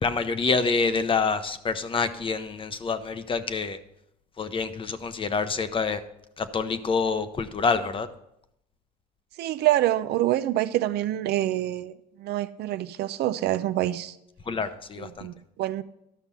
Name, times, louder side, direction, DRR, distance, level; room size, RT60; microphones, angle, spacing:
voice 1, 0.0-3.8 4.4-6.0 6.4-8.1 14.5-15.3, left 4 dB, 30° left, 0.8 m, -27 dB
voice 2, 9.4-14.1 15.0-15.8, right 14 dB, 75° right, 0.6 m, -26 dB
12.0 x 6.0 x 5.5 m
cardioid pair, 110°, 17 cm